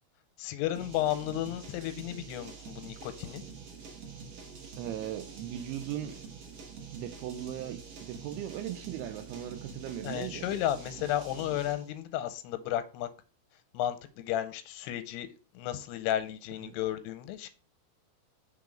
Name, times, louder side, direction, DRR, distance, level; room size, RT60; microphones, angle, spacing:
voice 1, 0.4-3.4 10.0-13.1 13.7-15.3 15.5-17.5, left 12 dB, 90° left, 2.7 m, -33 dB
sound 1, 0.8-11.9, right 5 dB, 65° right, 1.4 m, -46 dB
voice 2, 4.8-6.2 6.9-10.5 16.6-16.8, right 11 dB, 85° right, 2.7 m, -38 dB
5.9 x 3.8 x 5.0 m
omnidirectional pair, 4.7 m